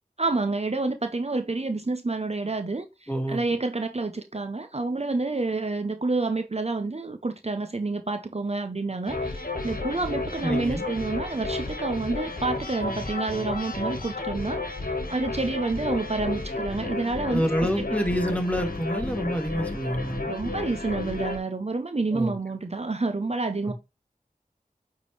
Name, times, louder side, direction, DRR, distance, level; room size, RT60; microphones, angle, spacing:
voice 1, 0.2-14.6 15.1-17.5 17.8-17.9 20.3-23.7, right 3 dB, 45° right, 0.7 m, -28 dB
voice 2, 3.1-3.4 10.4-10.8 17.3-20.3 22.1-22.3, equal, 10° left, 1.7 m, -27 dB
sound 1, 9.1-21.4, left 2 dB, 70° left, 1.4 m, -32 dB
9.1 x 3.8 x 3.2 m
wide cardioid pair, 40°, 15 cm